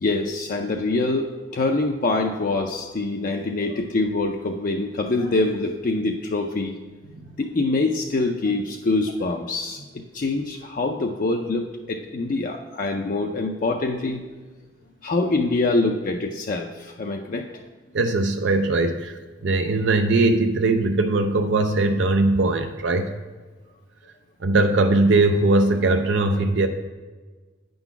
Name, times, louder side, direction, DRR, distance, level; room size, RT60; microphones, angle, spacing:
voice 1, 0.0-6.7 7.4-9.8 10.1-14.2 15.0-17.6, left 2 dB, 50° left, 2 dB, 0.4 m, -25 dB
voice 2, 17.9-19.1 19.4-23.1 24.4-26.7, right 2 dB, 80° right, 6 dB, 0.5 m, -20 dB
8.9 x 3.9 x 5.8 m, 1.3 s
head